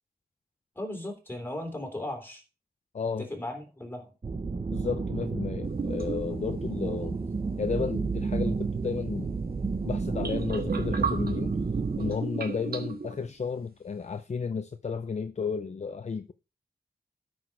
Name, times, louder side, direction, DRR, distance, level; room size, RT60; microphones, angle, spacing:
voice 1, 0.7-2.4 3.2-4.1, left 1 dB, 15° left, 3.4 m, -36 dB
voice 2, 2.9-3.3 4.7-7.2 7.6-9.4 9.8-11.6 12.0-16.3, left 5 dB, 45° left, 0.6 m, -33 dB
sound 1, 4.2-12.2, right 4 dB, 35° right, 0.7 m, -31 dB
sound 2, 5.6-6.6 10.0-13.3, right 5 dB, 70° right, 1.5 m, -35 dB
12.5 x 6.2 x 4.7 m
wide cardioid pair, 130°, 16 cm